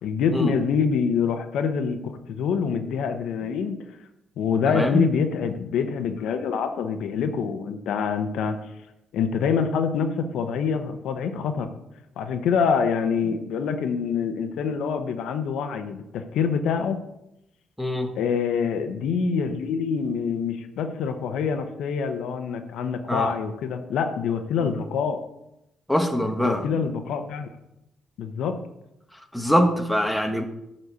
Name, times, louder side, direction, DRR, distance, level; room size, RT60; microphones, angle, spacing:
voice 1, 0.0-2.0 2.3-3.8 4.4-8.6 9.1-11.7 12.2-17.0 18.2-25.2 26.4-27.5 28.2-28.6, left 6 dB, 80° left, 7 dB, 0.9 m, -25 dB
voice 2, 4.7-5.0 17.8-18.1 23.1-23.3 24.6-24.7 25.9-26.8 29.3-30.4, equal, 5° left, 5 dB, 1.1 m, -23 dB
9.5 x 4.3 x 6.7 m, 0.86 s
cardioid pair, 90°, 0 cm